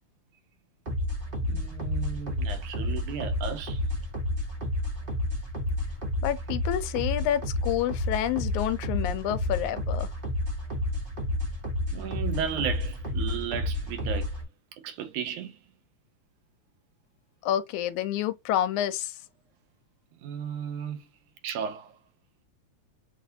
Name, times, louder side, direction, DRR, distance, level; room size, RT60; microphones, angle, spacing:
sound 1, 0.8-14.4, left 1 dB, 40° right, 0.7 m, -30 dB
voice 1, 1.5-3.9 11.9-14.4 14.8-15.6 20.2-21.1 21.4-22.0, right 8 dB, 85° right, 2.4 m, -34 dB
voice 2, 6.2-10.1 17.4-19.2, left 11 dB, 80° left, 2.0 m, -28 dB
6.2 x 2.6 x 2.7 m
omnidirectional pair, 3.4 m